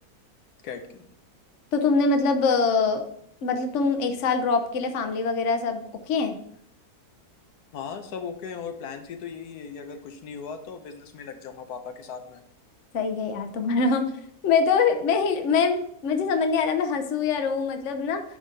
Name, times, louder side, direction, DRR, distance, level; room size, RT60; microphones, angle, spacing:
voice 1, 0.6-1.0 7.7-12.4, left 6 dB, 85° left, 6 dB, 1.4 m, -38 dB
voice 2, 1.7-3.0 3.4-6.4 12.9-14.1 14.4-18.2, left 4 dB, 55° left, 6 dB, 1.1 m, -24 dB
10.5 x 3.9 x 4.0 m, 0.68 s
omnidirectional pair, 1.6 m